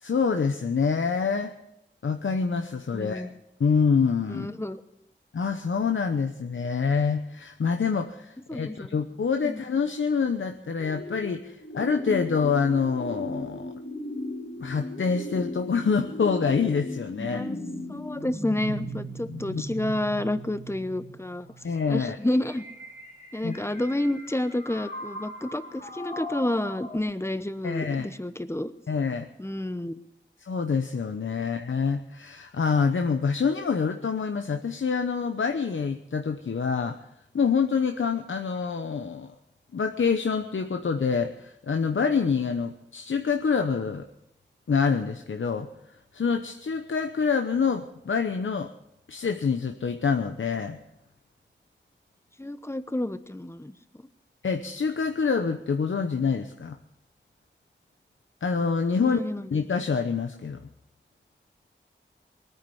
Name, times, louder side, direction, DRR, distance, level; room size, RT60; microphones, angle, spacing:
voice 1, 0.0-1.5 2.0-3.3 3.6-4.5 5.3-13.7 14.6-17.5 19.3-19.6 21.6-22.2 23.4-23.6 27.6-28.1 28.9-29.3 30.4-37.0 37.3-39.3 39.7-44.1 44.7-45.7 46.1-48.7 49.1-50.8 54.4-56.8 58.4-59.2 59.5-60.6, left 5 dB, 85° left, 6 dB, 0.9 m, -26 dB
voice 2, 2.9-3.3 4.3-4.8 8.5-8.9 9.4-9.6 17.3-17.5 17.9-21.5 21.9-22.6 23.3-28.7 29.4-30.0 52.4-53.7 59.0-59.5, left 1 dB, 15° left, 12 dB, 1.0 m, -30 dB
sound 1, 10.8-27.0, left 1 dB, 40° left, 3.5 m, -38 dB
20.5 x 9.6 x 7.1 m, 0.82 s
wide cardioid pair, 70°, 20 cm